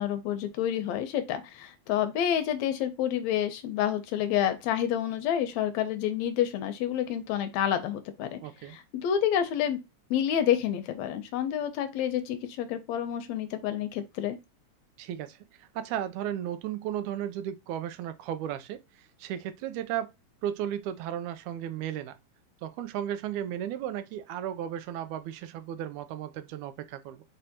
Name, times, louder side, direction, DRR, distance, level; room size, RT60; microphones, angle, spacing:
voice 1, 0.0-8.4 8.6-9.8 10.1-14.4, left 10 dB, 75° left, 1.8 m, -29 dB
voice 2, 8.4-8.8 15.0-18.8 19.2-20.1 20.4-22.2 22.6-27.2, right 10 dB, 80° right, 1.9 m, -34 dB
5.0 x 3.3 x 2.9 m
omnidirectional pair, 3.6 m